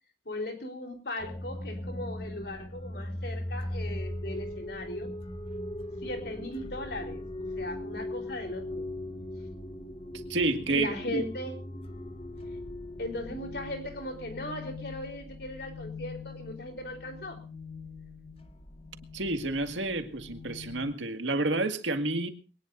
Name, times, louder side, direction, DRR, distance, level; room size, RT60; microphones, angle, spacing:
voice 1, 0.3-5.1 6.0-7.2 7.6-8.9 10.7-11.5 13.0-17.4, left 1 dB, 60° left, 3.9 m, -38 dB
sound 1, 1.2-20.9, left 1 dB, 30° left, 1.6 m, -40 dB
voice 2, 10.3-10.9 11.1-11.2 19.1-22.3, right 2 dB, 85° right, 2.0 m, -29 dB
22.5 x 19.0 x 2.6 m
head